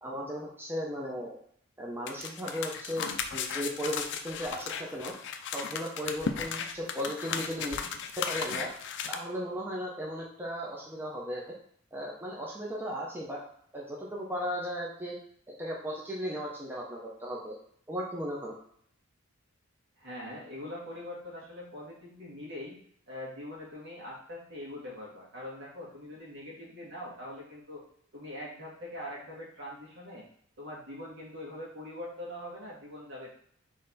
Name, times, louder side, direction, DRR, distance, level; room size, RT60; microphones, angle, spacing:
voice 1, 0.0-1.4 1.8-5.1 5.5-7.8 8.3-8.7 9.1-11.4 11.9-13.4 13.7-15.1 15.5-17.6 17.9-18.5, equal, 10° right, -4 dB, 0.7 m, -36 dB
sound 1, 2.1-9.1, left 6 dB, 60° left, 0.4 m, -36 dB
voice 2, 20.0-22.8 23.1-27.8 28.1-30.2 30.6-33.3, left 1 dB, 60° right, -4 dB, 1.8 m, -42 dB
3.9 x 3.2 x 4.1 m, 0.65 s
head